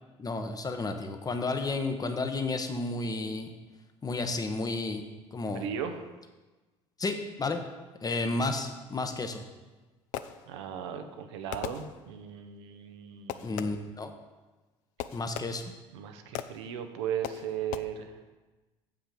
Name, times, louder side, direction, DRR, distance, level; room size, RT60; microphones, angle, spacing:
voice 1, 0.2-3.5 4.0-5.0 5.3-5.6 7.0-7.6 8.0-9.4 13.4-14.1 15.1-15.6, left 3 dB, 25° left, 6 dB, 1.0 m, -32 dB
voice 2, 5.5-6.1 10.5-13.7 15.9-18.2, right 8 dB, 85° right, 8 dB, 0.7 m, -37 dB
Fireworks, 9.6-10.8 11.5-12.4 13.3-14.0 15.0-15.9 16.3-16.8 17.2-17.8, left 11 dB, 65° left, 0.4 m, -40 dB
7.5 x 5.8 x 5.0 m, 1.2 s
hypercardioid pair, 70°, 14 cm